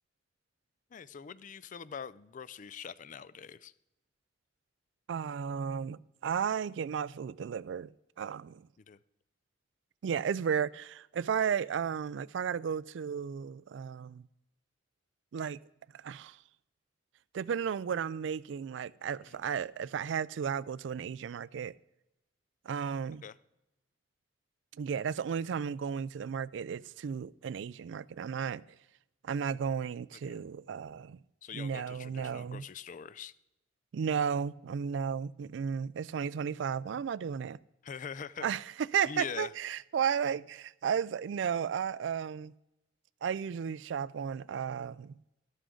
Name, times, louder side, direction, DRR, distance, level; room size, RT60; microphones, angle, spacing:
voice 1, 0.9-3.7 8.9-9.0 19.3-19.4 23.2-23.4 30.3-30.4 31.4-33.3 37.8-38.5 39.1-39.5, left 6 dB, 45° left, 0.4 m, -43 dB
voice 2, 5.1-8.7 10.0-14.2 15.3-15.6 15.9-16.4 17.3-21.7 22.7-23.2 24.8-28.6 29.2-31.2 31.5-32.6 33.9-37.6 38.4-38.6 38.9-42.5 43.2-45.2, right 7 dB, 75° right, 0.3 m, -34 dB
13.0 x 12.5 x 3.8 m
head